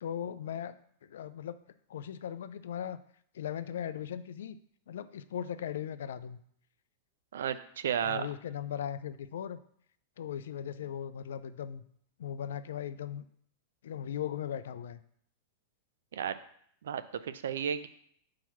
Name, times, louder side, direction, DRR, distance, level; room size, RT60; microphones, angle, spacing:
voice 1, 0.0-1.6 1.9-3.0 3.3-4.6 4.9-6.4 8.0-9.6 10.2-11.8 12.2-13.2 13.8-15.0, left 9 dB, 75° left, 14 dB, 0.4 m, -38 dB
voice 2, 7.3-8.3 16.1-16.4 16.8-17.9, right 8 dB, 75° right, 13 dB, 0.5 m, -33 dB
4.7 x 4.5 x 5.8 m, 0.64 s
hypercardioid pair, 100°, 0 cm